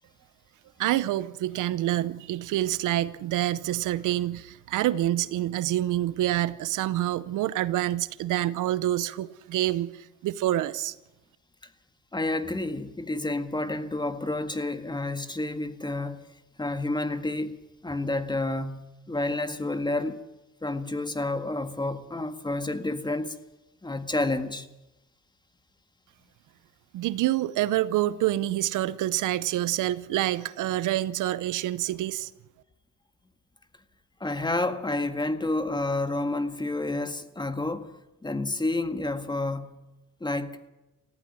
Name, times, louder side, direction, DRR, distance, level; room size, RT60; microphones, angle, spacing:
voice 1, 0.8-10.9 26.9-32.3, right 14 dB, 85° right, 0.8 m, -27 dB
voice 2, 12.1-16.2 16.6-17.6 17.8-20.2 20.6-23.4 23.8-24.7 34.2-39.8 40.2-40.6, left 2 dB, 15° left, 1.8 m, -29 dB
18.0 x 15.0 x 9.6 m
cardioid pair, 90°, 30 cm